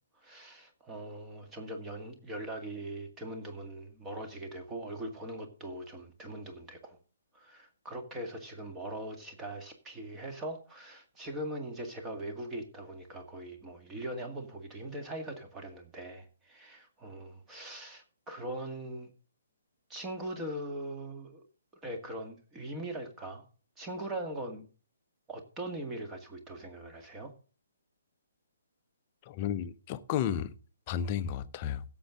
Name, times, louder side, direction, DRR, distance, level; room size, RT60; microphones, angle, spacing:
voice 1, 0.2-7.0 7.3-19.1 19.9-21.4 21.8-23.4 23.8-24.7 25.3-27.3, right 1 dB, 15° right, 2.0 m, -41 dB
voice 2, 29.3-30.5 30.9-31.8, left 9 dB, 30° left, 0.8 m, -32 dB
16.5 x 7.2 x 3.7 m
figure-of-eight pair, 130°, 0 cm